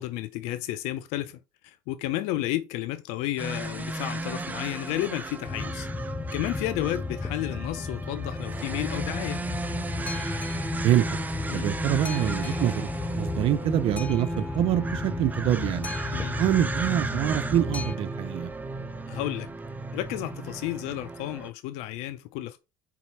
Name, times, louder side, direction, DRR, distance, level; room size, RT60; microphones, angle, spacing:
voice 1, 0.0-5.9 6.3-9.4 11.5-11.7 16.1-16.4 19.1-19.5 19.9-22.6, left 15 dB, 75° left, 0.6 m, -32 dB
sound 1, 3.4-21.5, right 2 dB, 15° right, 0.7 m, -34 dB
Boat Water vehicle, 5.5-18.0, left 4 dB, 15° left, 0.3 m, -34 dB
voice 2, 10.8-11.2 11.5-12.9 13.2-15.9 16.4-18.5, right 12 dB, 55° right, 0.5 m, -25 dB
4.8 x 4.0 x 5.5 m
supercardioid pair, 100°, 11 cm